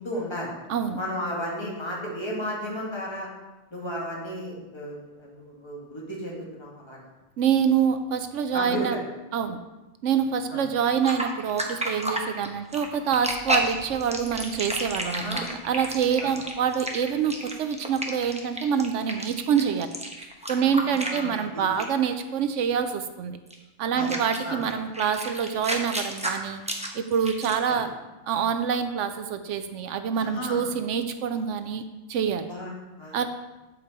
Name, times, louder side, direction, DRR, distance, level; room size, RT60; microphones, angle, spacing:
voice 1, 0.0-0.5 1.0-3.3 3.7-7.0 8.5-9.0 10.5-10.6 15.0-15.5 16.2-16.3 20.6-21.6 23.9-24.1 24.4-24.6 27.7-27.8 30.1-30.6 32.5-33.2, equal, 20° left, -4 dB, 1.9 m, -34 dB
voice 2, 7.4-9.0 9.3-9.6 10.0-19.9 20.5-23.4 23.8-26.6 26.9-27.9 28.3-31.8 32.1-32.5 33.1-33.3, right 7 dB, 75° right, 9 dB, 0.9 m, -26 dB
sound 1, 11.0-21.5 21.8-22.1 23.5-23.6 24.0-27.7, right 1 dB, 5° right, 0.7 m, -31 dB
8.6 x 5.2 x 4.4 m, 1.1 s
omnidirectional pair, 1.3 m